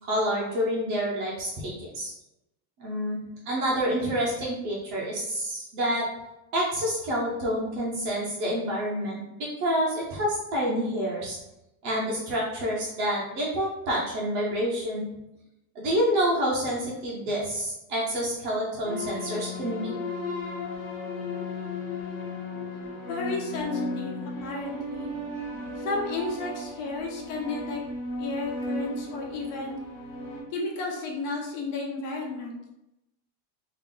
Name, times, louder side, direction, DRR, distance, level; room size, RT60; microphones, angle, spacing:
voice 1, 0.0-2.1 2.8-3.2 3.5-6.1 6.5-11.4 11.8-15.1 15.8-19.9, equal, 25° right, -4 dB, 0.3 m, -28 dB
sound 1, 18.8-30.4, left 2 dB, 5° left, 1.3 m, -35 dB
voice 2, 23.1-25.1 25.8-27.8 28.2-29.8 30.5-32.6, left 3 dB, 70° left, -1 dB, 1.2 m, -32 dB
3.6 x 2.3 x 3.7 m, 0.89 s
supercardioid pair, 165°, 50 cm